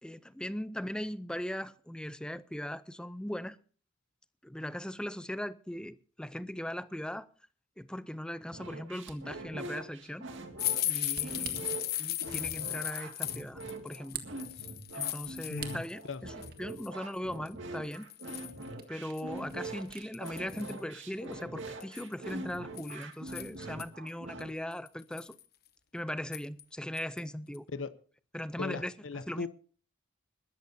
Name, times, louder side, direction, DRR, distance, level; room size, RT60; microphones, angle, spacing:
voice 1, 0.0-3.6 4.4-7.3 7.8-10.3 10.8-14.2 14.9-16.3 16.6-18.1 18.9-25.4 25.9-27.7 28.3-28.9 29.3-29.5, left 1 dB, 5° left, 0.5 m, -39 dB
sound 1, 8.5-24.5, right 2 dB, 70° right, 2.2 m, -43 dB
Camera, 8.8-20.1, right 9 dB, 55° right, 1.7 m, -51 dB
sound 2, 10.6-15.9 16.3-16.9 17.5-17.6 17.9-18.7 19.2-19.3 19.5-19.6 20.1-20.8 21.8-23.8 24.4-24.5 24.9-25.4 26.3-26.6 27.0-27.2 27.6-27.7, left 13 dB, 55° left, 1.0 m, -36 dB
voice 2, 15.5-16.2 27.7-27.9 28.6-29.5, left 4 dB, 80° left, 0.8 m, -38 dB
21.5 x 13.0 x 2.7 m
head